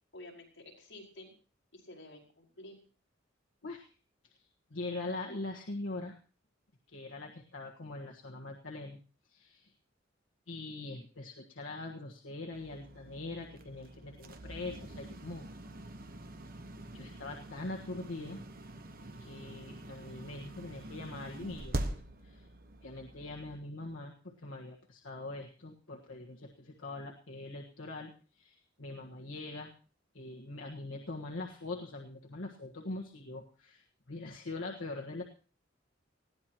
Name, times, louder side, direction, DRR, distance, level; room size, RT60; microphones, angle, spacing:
voice 1, 0.1-1.3 1.7-2.8, left 1 dB, 65° left, -3 dB, 5.1 m, -51 dB
voice 2, 4.4-6.1 6.9-9.0 9.3-9.7 10.5-15.5 16.9-18.4 19.2-22.5 22.8-29.7 30.1-35.2, left 2 dB, 90° left, -1 dB, 1.5 m, -42 dB
sound 1, 12.5-23.6, right 1 dB, 50° right, 1.1 m, -44 dB
20.5 x 15.5 x 3.0 m, 0.38 s
head